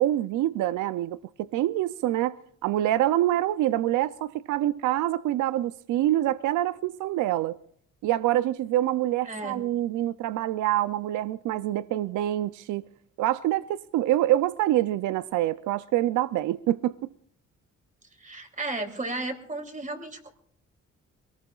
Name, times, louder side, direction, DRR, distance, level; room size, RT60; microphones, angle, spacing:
voice 1, 0.0-2.4 2.6-7.6 8.0-12.8 13.2-16.9, right 14 dB, 80° right, 0.5 m, -26 dB
voice 2, 9.3-9.6 18.2-20.3, right 2 dB, 25° right, 3.1 m, -34 dB
23.0 x 18.5 x 2.4 m
cardioid pair, 90°, 30 cm